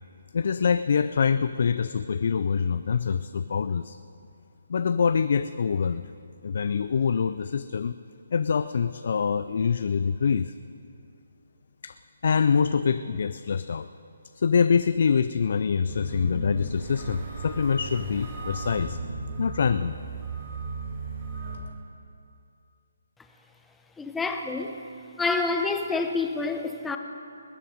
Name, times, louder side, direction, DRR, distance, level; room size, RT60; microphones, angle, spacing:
voice 1, 0.3-4.0 4.7-6.0 6.4-7.9 8.3-10.5 11.8-12.0 12.2-13.9 14.3-19.0 19.4-19.9, left 6 dB, 55° left, 12 dB, 0.4 m, -25 dB
sound 1, 15.9-21.6, right 3 dB, 35° right, 4.0 m, -35 dB
voice 2, 24.0-24.7 25.2-27.0, left 3 dB, 5° left, 5 dB, 0.8 m, -27 dB
20.5 x 9.2 x 5.2 m, 2.6 s
figure-of-eight pair, 145°, 0 cm